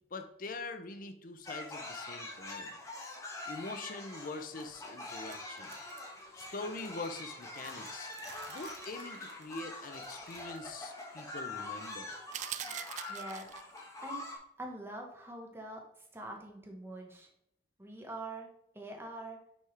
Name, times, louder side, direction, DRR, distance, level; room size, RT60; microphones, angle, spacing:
voice 1, 0.1-2.7 3.5-5.7 6.3-8.1 8.5-12.1, left 3 dB, 50° left, 7 dB, 0.7 m, -43 dB
sound 1, 1.4-14.4, left 2 dB, 20° left, 1.3 m, -44 dB
sound 2, 3.4-3.8 4.1-4.9 5.2-10.8 11.0-11.3 12.4-12.5, right 5 dB, 70° right, 1.0 m, -58 dB
sound 3, 12.3-13.8, right 11 dB, 40° right, 0.3 m, -41 dB
voice 2, 13.1-13.5 14.0-14.2 14.6-15.8 16.1-17.3 17.8-18.5 18.7-19.4, right 2 dB, 15° right, 1 dB, 1.3 m, -44 dB
6.2 x 5.7 x 3.3 m, 0.74 s
head